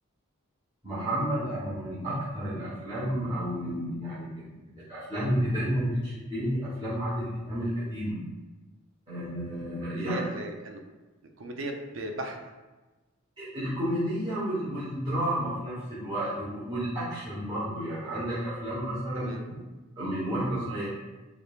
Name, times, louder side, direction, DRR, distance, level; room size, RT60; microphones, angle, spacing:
voice 1, 0.8-8.2 9.1-10.2 13.4-19.3 20.0-20.9, equal, 25° right, -11 dB, 1.1 m, -31 dB
voice 2, 9.9-10.8 11.4-12.4 19.1-19.5, right 1 dB, 65° right, 3 dB, 0.5 m, -36 dB
4.7 x 3.3 x 2.4 m, 1.2 s
head